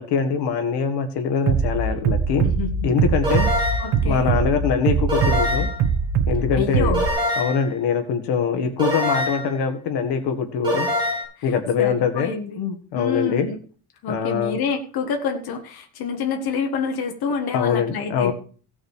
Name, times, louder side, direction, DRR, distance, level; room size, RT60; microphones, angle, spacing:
voice 1, 0.0-2.5 2.8-3.5 4.0-5.7 6.3-7.0 7.4-10.9 11.4-13.5 14.1-14.6 17.5-18.3, left 6 dB, 80° left, 6 dB, 1.7 m, -23 dB
Bass drum, 1.5-7.1, right 6 dB, 70° right, 1.5 m, -22 dB
voice 2, 2.4-2.9 3.8-4.3 6.6-7.1 11.4-12.6 12.9-13.6 14.0-18.3, left 6 dB, 65° left, 4 dB, 1.6 m, -27 dB
sound 1, 3.2-4.0 5.1-5.8 6.9-7.7 8.8-9.5 10.6-11.2, left 1 dB, 10° right, 6.8 m, -24 dB
16.5 x 6.4 x 4.8 m, 0.41 s
cardioid pair, 165°, 40 cm